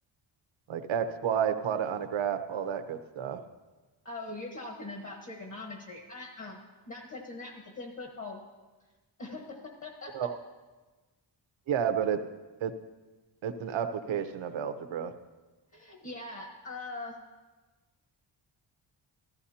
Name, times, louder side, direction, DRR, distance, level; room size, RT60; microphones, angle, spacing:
voice 1, 0.7-3.4 10.1-10.4 11.7-12.2 12.6-12.7 13.4-15.1, right 8 dB, 85° right, 8 dB, 0.9 m, -31 dB
voice 2, 4.0-8.4 9.2-10.3 15.7-17.2, left 2 dB, 40° left, 1 dB, 1.3 m, -42 dB
14.5 x 14.5 x 2.8 m, 1.2 s
wide cardioid pair, 170°, 45 cm